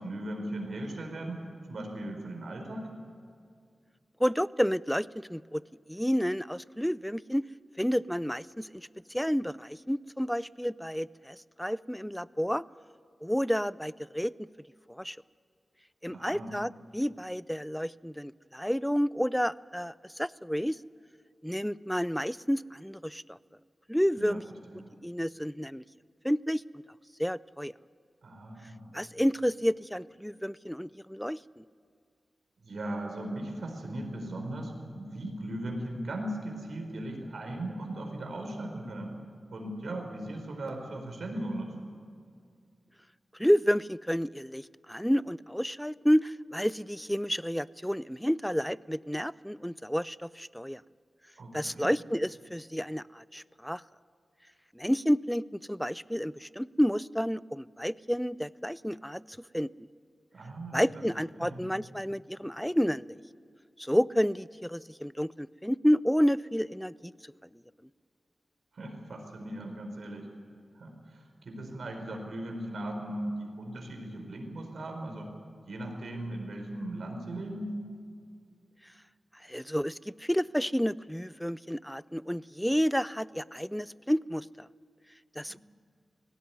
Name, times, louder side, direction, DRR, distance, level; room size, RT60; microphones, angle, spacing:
voice 1, 0.0-2.9 16.1-16.5 24.2-24.9 28.2-29.0 32.6-39.1 39.5-41.9 51.4-51.9 60.3-61.0 61.4-61.6 68.7-70.3 70.7-75.3 75.6-77.7 85.5-85.6, right 1 dB, 75° right, 3 dB, 4.5 m, -38 dB
voice 2, 4.2-5.6 5.9-7.4 7.8-12.6 13.2-14.3 14.9-15.2 16.0-20.8 21.4-23.4 23.9-24.4 25.0-25.8 26.2-26.6 27.2-27.7 28.9-31.6 43.4-50.8 51.5-53.8 54.8-59.2 59.5-59.7 60.7-63.2 63.8-67.1 79.5-84.7 85.4-85.6, equal, ahead, 19 dB, 0.4 m, -30 dB
19.0 x 16.5 x 9.5 m, 2.2 s
cardioid pair, 65°, 0 cm